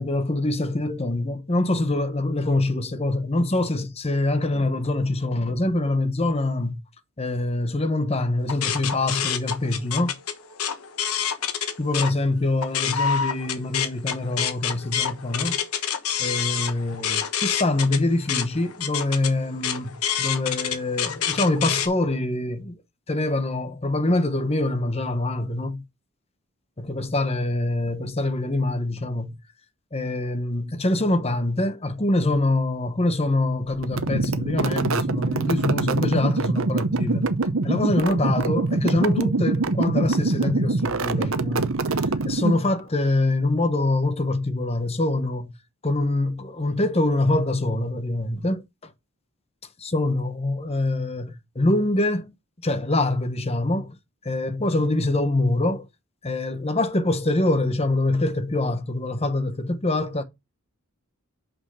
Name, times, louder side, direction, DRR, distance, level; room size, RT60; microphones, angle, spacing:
voice 1, 0.0-6.8 7.2-10.2 11.8-15.6 16.2-22.8 23.1-25.8 26.8-29.4 29.9-37.3 37.6-45.5 45.8-48.9 49.8-54.0 54.2-55.9 56.2-60.2, left 2 dB, 30° left, 1.0 m, -24 dB
sound 1, 8.5-12.1 12.5-21.9, left 8 dB, 85° left, 1.3 m, -27 dB
sound 2, 33.8-42.8, right 3 dB, 65° right, 0.8 m, -24 dB
6.3 x 5.7 x 5.5 m
head